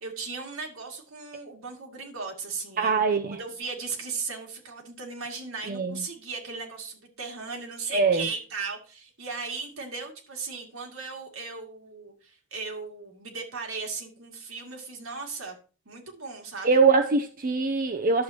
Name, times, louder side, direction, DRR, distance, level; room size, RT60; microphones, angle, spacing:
voice 1, 0.0-15.6 15.9-16.8, right 4 dB, 80° right, 2.4 m, -37 dB
voice 2, 2.8-3.4 5.7-5.9 7.9-8.2 16.6-18.2, right 4 dB, 45° right, 0.6 m, -22 dB
11.5 x 7.7 x 2.9 m
head